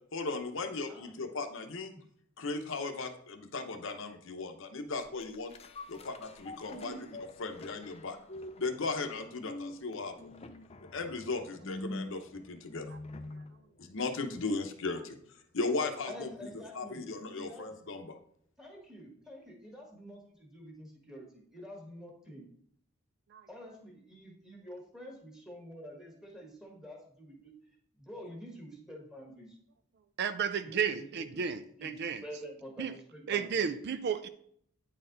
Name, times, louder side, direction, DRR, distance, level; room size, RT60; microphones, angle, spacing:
voice 1, 0.1-1.9 2.4-5.5 5.9-6.9 7.4-8.2 8.6-10.3 10.9-12.9 13.8-15.2 15.5-16.3 16.7-18.1, left 3 dB, 60° left, 6 dB, 0.8 m, -36 dB
voice 2, 0.9-1.2 1.9-2.0 5.9-6.0 6.7-7.1 16.1-17.1 17.3-17.7 18.6-22.4 23.5-27.5 27.9-29.6 30.6-33.6, equal, 5° right, -1 dB, 1.5 m, -48 dB
sound 1, 5.0-13.6 14.0-14.1, left 2 dB, 30° left, 0.5 m, -45 dB
voice 3, 30.2-31.6 32.0-32.2 32.8-32.9 33.3-34.3, right 7 dB, 50° right, 11 dB, 0.4 m, -32 dB
9.2 x 4.3 x 3.9 m, 0.65 s
head